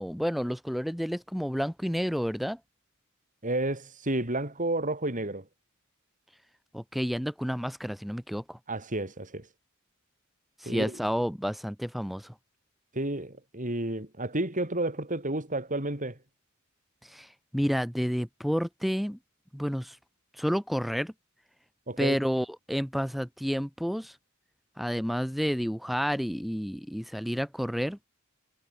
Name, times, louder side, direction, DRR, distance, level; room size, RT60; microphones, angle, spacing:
voice 1, 0.0-2.6 6.7-8.6 10.6-12.3 17.0-19.2 19.5-20.0 20.4-21.1 22.0-24.2 24.8-28.0, equal, ahead, 4.0 m, -30 dB
voice 2, 3.4-5.5 8.7-9.5 10.7-11.0 12.9-16.2 21.9-22.2, right 2 dB, 40° right, 5.7 m, -31 dB
head